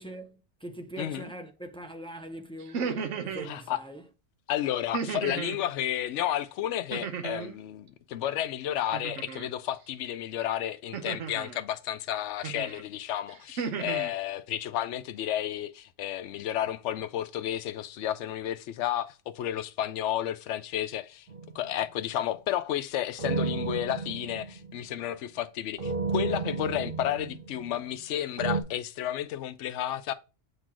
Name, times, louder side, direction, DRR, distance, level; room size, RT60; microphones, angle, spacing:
voice 1, 0.0-2.8 3.2-4.0, right 1 dB, 5° left, 0.4 m, -42 dB
voice 2, 1.0-1.3 3.4-3.8 4.5-21.3 21.5-30.1, left 12 dB, 75° left, 0.9 m, -32 dB
sound 1, 2.6-3.5 4.9-5.6 6.9-7.6 8.9-9.5 10.9-11.6 12.4-12.8 13.3-14.1, right 6 dB, 80° right, 1.2 m, -34 dB
sound 2, 21.3-21.9 23.2-25.0 25.8-28.0 28.4-28.6, right 4 dB, 55° right, 1.1 m, -32 dB
7.4 x 3.0 x 6.1 m
omnidirectional pair, 1.2 m